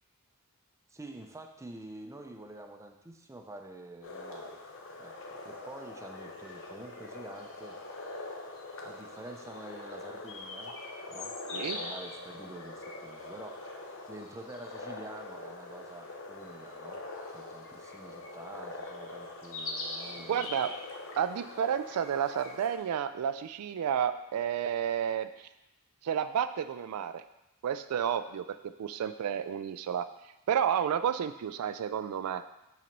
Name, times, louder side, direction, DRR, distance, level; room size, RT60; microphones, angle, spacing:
voice 1, 0.9-4.6 4.9-7.8 8.8-10.8 11.1-13.6 14.1-17.0 17.3-20.5, right 2 dB, 15° right, 3 dB, 0.5 m, -47 dB
sound 1, 4.0-22.8, left 2 dB, 60° left, 1.0 m, -43 dB
voice 2, 20.3-20.7 21.2-25.5 26.0-27.2 27.6-30.1 30.5-32.4, right 8 dB, 80° right, 11 dB, 0.3 m, -31 dB
6.0 x 4.0 x 5.9 m, 0.91 s
head